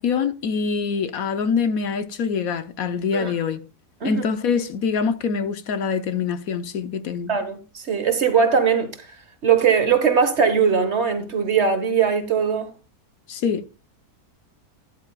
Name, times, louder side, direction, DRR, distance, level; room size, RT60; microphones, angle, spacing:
voice 1, 0.0-3.6 4.0-7.3 13.3-13.7, left 6 dB, 65° left, 1.2 m, -24 dB
voice 2, 7.3-9.1 9.4-12.7, right 6 dB, 45° right, 1.5 m, -20 dB
12.5 x 10.5 x 2.3 m
omnidirectional pair, 1.7 m